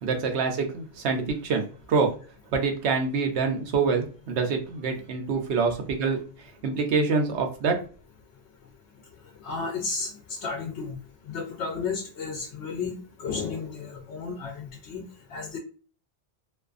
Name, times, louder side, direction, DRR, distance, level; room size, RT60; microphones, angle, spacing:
voice 1, 0.0-2.1 2.5-6.2 6.6-7.8, right 4 dB, 80° right, 4 dB, 0.9 m, -26 dB
voice 2, 9.4-10.9 11.3-15.0 15.3-15.6, left 5 dB, 90° left, 1 dB, 0.9 m, -33 dB
2.5 x 2.4 x 2.4 m, 0.39 s
omnidirectional pair, 1.1 m